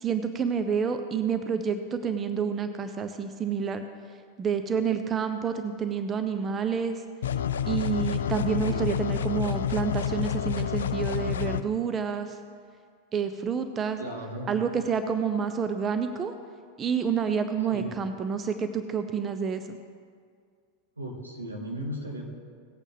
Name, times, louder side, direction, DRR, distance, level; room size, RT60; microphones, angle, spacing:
voice 1, 0.0-3.8 4.4-7.0 7.7-12.4 13.1-14.0 14.5-16.3 16.8-19.8, right 6 dB, 25° right, 8 dB, 0.6 m, -28 dB
sound 1, 7.2-11.6, left 9 dB, 65° left, 0.4 m, -29 dB
voice 2, 14.0-14.5 17.7-18.1 21.0-22.3, right 1 dB, 80° right, -1 dB, 2.0 m, -36 dB
18.5 x 8.3 x 3.5 m, 2.1 s
figure-of-eight pair, 90°, 0 cm